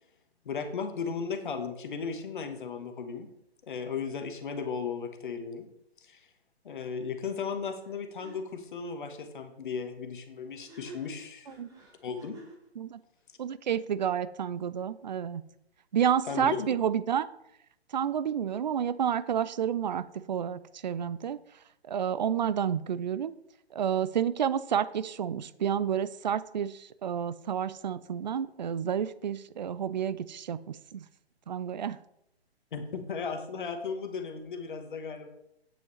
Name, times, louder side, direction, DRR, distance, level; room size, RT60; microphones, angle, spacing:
voice 1, 0.4-3.3 3.7-5.7 6.0-6.2 6.6-11.5 12.0-12.4 16.3-16.7 32.7-35.3, left 5 dB, 50° left, 7 dB, 1.3 m, -36 dB
sound 1, 7.8-7.9 8.2-8.4 10.5-12.7, right 3 dB, 10° right, 2.2 m, -50 dB
voice 2, 13.4-15.4 15.9-17.3 17.9-21.4 21.9-23.3 23.7-31.0 31.5-32.0, right 8 dB, 45° right, 16 dB, 0.4 m, -30 dB
9.2 x 8.3 x 3.1 m, 0.78 s
figure-of-eight pair, 130°, 32 cm